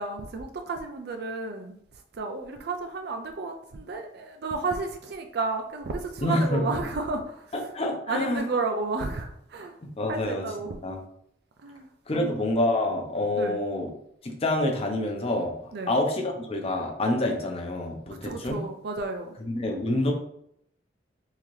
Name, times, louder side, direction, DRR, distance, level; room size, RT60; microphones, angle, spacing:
voice 1, 0.0-1.8 2.1-7.7 8.1-9.8 10.1-10.8 11.6-11.9 12.1-12.4 13.3-13.6 15.7-16.0 18.2-19.3, right 3 dB, 65° right, 0.4 m, -32 dB
voice 2, 6.2-6.6 7.5-8.4 9.8-10.4 10.8-11.0 12.1-13.9 14.2-18.6 19.5-20.1, left 1 dB, 35° left, 0.7 m, -27 dB
3.8 x 2.8 x 3.1 m
head